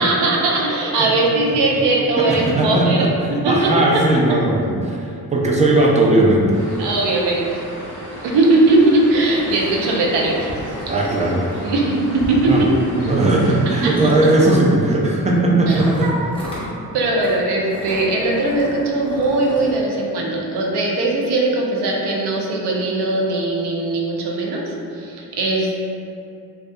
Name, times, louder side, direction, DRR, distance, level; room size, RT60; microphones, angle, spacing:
voice 1, 0.0-3.7 6.8-7.6 8.2-10.5 11.6-12.7 13.8-13.9 15.7-16.3 16.9-25.7, right 2 dB, 85° right, -2 dB, 0.5 m, -19 dB
voice 2, 2.2-3.1 3.4-6.4 10.9-11.8 12.5-12.6 12.9-16.1, right 2 dB, 20° right, -2 dB, 0.4 m, -17 dB
sound 1, 6.5-14.2, equal, 35° right, 1.0 m, -35 dB
sound 2, 8.4-8.5 8.8-8.9 9.2-11.9 12.9-13.1 13.7-14.6 15.6-16.7 17.2-17.4 17.6-19.8, equal, 15° left, 0.7 m, -33 dB
2.6 x 2.3 x 2.2 m, 2.5 s
cardioid pair, 65°, 39 cm